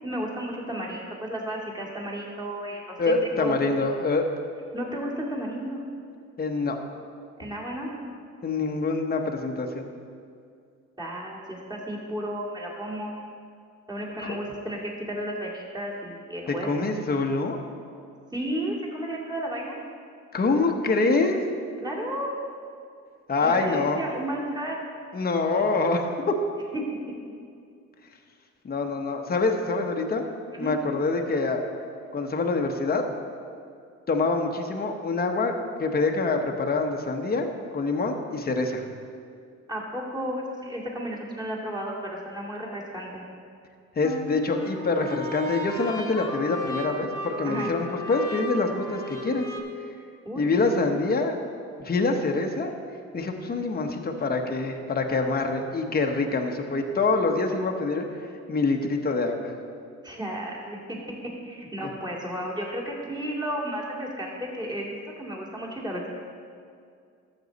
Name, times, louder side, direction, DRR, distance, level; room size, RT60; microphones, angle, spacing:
voice 1, 0.0-3.6 4.7-5.8 7.4-7.9 11.0-13.1 13.9-16.7 18.3-19.8 21.8-22.3 23.4-24.8 26.7-26.9 30.5-30.8 39.7-43.2 47.4-47.7 50.2-50.5 60.0-61.0 61.4-66.1, equal, 15° right, -3 dB, 2.3 m, -33 dB
voice 2, 3.0-4.3 6.4-6.8 8.4-9.9 16.5-17.6 20.3-21.4 23.3-24.0 25.1-26.3 28.6-30.3 30.6-31.6 32.1-33.0 34.1-35.5 35.8-38.9 44.0-49.5 49.8-49.9 50.4-51.4 51.8-52.7 53.1-59.5, left 3 dB, 30° left, 3 dB, 1.0 m, -25 dB
sound 1, 44.0-49.6, left 1 dB, 10° left, 1.1 m, -35 dB
12.0 x 7.3 x 4.1 m, 2.3 s
cardioid pair, 90°, 30 cm